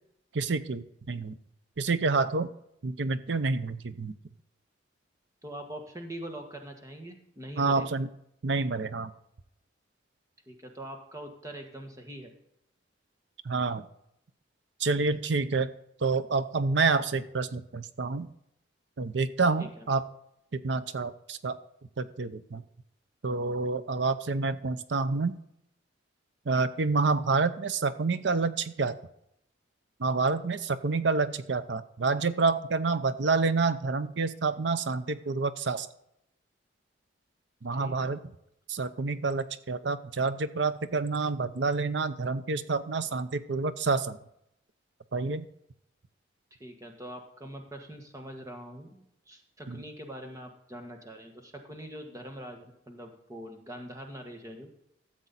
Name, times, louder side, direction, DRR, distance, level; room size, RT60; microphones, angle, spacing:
voice 1, 0.3-1.4 1.8-2.5 2.8-4.1 7.6-8.1 8.4-9.1 13.4-13.9 14.8-15.7 16.0-18.3 19.0-20.0 20.5-21.6 22.0-22.6 23.2-25.4 26.5-28.9 30.0-35.9 37.6-38.2 38.7-44.2 45.1-45.5 49.7-49.8, right 4 dB, 70° right, 13 dB, 0.6 m, -28 dB
voice 2, 5.4-7.9 10.5-12.3 19.6-19.9 37.7-38.2 46.6-54.7, right 1 dB, 20° right, 4 dB, 1.4 m, -43 dB
13.5 x 7.5 x 4.1 m, 0.77 s
head